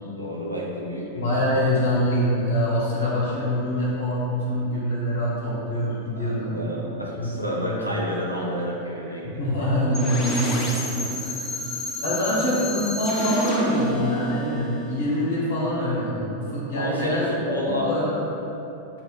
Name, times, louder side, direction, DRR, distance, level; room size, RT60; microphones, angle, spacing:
voice 1, 0.0-1.3 6.2-9.7 11.0-11.8 12.1-12.4 16.8-17.9, equal, 90° right, -3 dB, 0.5 m, -31 dB
voice 2, 1.2-6.6 7.2-7.3 7.6-7.8 9.3-10.7 11.1-11.2 12.0-17.2 17.7-18.2, equal, 65° left, -6 dB, 0.9 m, -24 dB
sound 1, 9.9-15.7, equal, 35° left, 0.5 m, -29 dB
5.5 x 2.1 x 2.3 m, 2.9 s
figure-of-eight pair, 90°, 0 cm